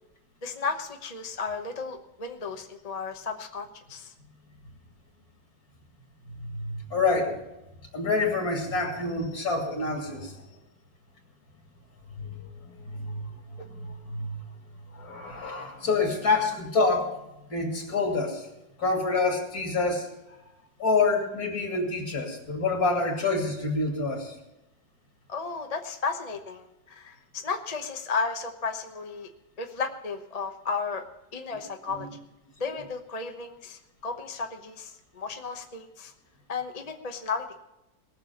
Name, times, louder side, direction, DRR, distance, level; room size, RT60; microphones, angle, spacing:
voice 1, 0.4-4.1 13.6-13.7 25.3-29.3 29.6-31.0 31.3-32.1 32.6-36.1 36.5-37.6, left 4 dB, 30° left, 4 dB, 0.8 m, -34 dB
voice 2, 6.4-7.4 7.9-10.4 12.2-14.4 14.9-17.1 17.5-18.5 18.8-20.1 20.8-24.4 32.0-32.1, left 3 dB, 55° left, 1 dB, 3.2 m, -27 dB
19.0 x 6.9 x 6.9 m, 0.92 s
omnidirectional pair, 2.0 m